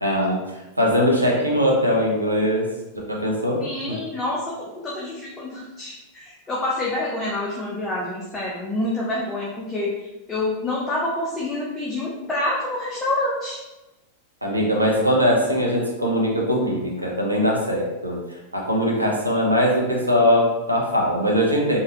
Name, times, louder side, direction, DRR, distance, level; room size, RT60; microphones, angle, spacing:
voice 1, 0.0-2.7 3.1-4.0 14.4-18.2 18.5-21.8, equal, 85° right, -1 dB, 0.8 m, -21 dB
voice 2, 3.6-4.5 4.8-13.6, left 2 dB, 15° left, -6 dB, 0.7 m, -27 dB
3.8 x 2.7 x 2.9 m, 1.1 s
figure-of-eight pair, 90°, 0 cm